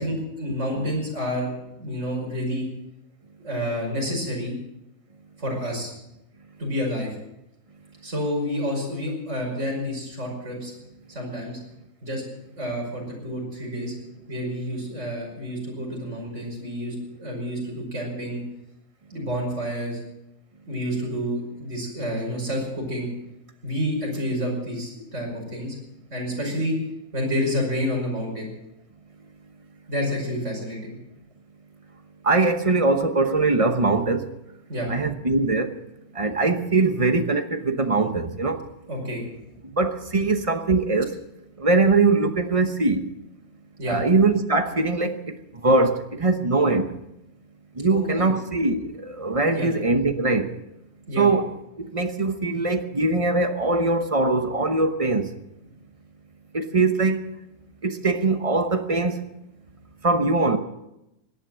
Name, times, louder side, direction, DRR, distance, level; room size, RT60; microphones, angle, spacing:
voice 1, 0.0-1.5 1.8-2.7 3.4-4.5 5.4-5.9 6.6-7.2 8.0-10.7 11.1-11.6 12.0-12.2 12.6-13.9 14.3-18.4 19.1-20.0 20.7-23.1 23.6-25.8 26.1-26.8 27.1-28.5 29.9-30.9 34.7-34.9 38.9-39.2 43.8-44.0 47.9-48.3 49.5-49.7 51.1-51.3, equal, 50° right, 5.9 m, -29 dB
voice 2, 32.2-34.3 34.9-35.8 36.1-38.6 39.6-41.2 41.6-43.1 43.9-46.9 47.7-50.5 51.2-51.5 51.8-55.3 56.5-57.2 57.8-59.2 60.0-60.6, right 3 dB, 25° right, 1.0 m, -22 dB
17.0 x 11.0 x 7.6 m
omnidirectional pair, 1.6 m